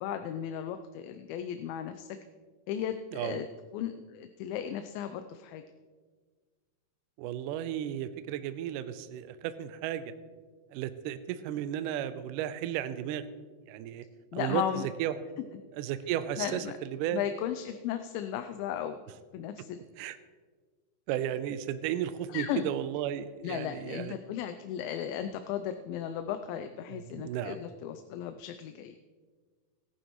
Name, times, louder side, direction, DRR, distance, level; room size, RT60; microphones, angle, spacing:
voice 1, 0.0-2.2 2.7-3.5 3.7-5.6 14.3-14.9 16.4-16.8 17.1-19.0 19.3-19.8 22.3-22.7 23.4-29.0, left 10 dB, 90° left, 8 dB, 2.4 m, -35 dB
voice 2, 7.2-10.1 10.7-13.2 13.7-14.1 14.3-14.6 15.0-15.2 15.8-17.2 20.0-20.2 21.1-24.1 26.9-27.6, right 11 dB, 80° right, 12 dB, 2.0 m, -34 dB
18.0 x 11.0 x 3.0 m, 1.5 s
omnidirectional pair, 4.1 m